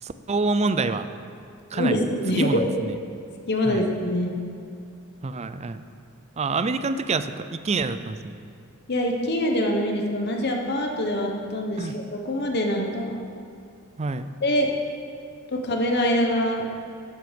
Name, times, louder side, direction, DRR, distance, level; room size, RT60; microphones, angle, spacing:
voice 1, 0.0-1.1 1.7-2.0 2.4-3.0 3.6-3.9 5.2-5.8 6.4-8.3 11.8-11.9 14.0-14.3, right 3 dB, 30° right, 11 dB, 0.4 m, -27 dB
voice 2, 1.7-2.7 3.5-4.4 8.9-13.2 14.4-14.7 15.5-16.7, left 1 dB, 50° left, 1 dB, 1.0 m, -24 dB
11.5 x 7.7 x 5.2 m, 2.5 s
head